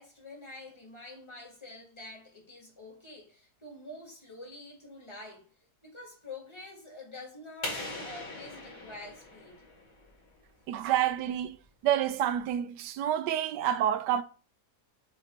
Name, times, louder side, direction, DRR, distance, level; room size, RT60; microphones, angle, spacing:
voice 1, 0.0-5.5 5.8-9.6, left 2 dB, 15° left, 1.7 m, -47 dB
sound 1, 7.6-10.3, left 2 dB, 55° left, 3.1 m, -40 dB
voice 2, 10.7-11.6 11.8-14.2, right 11 dB, 85° right, 1.2 m, -28 dB
7.6 x 3.3 x 4.3 m
omnidirectional pair, 1.8 m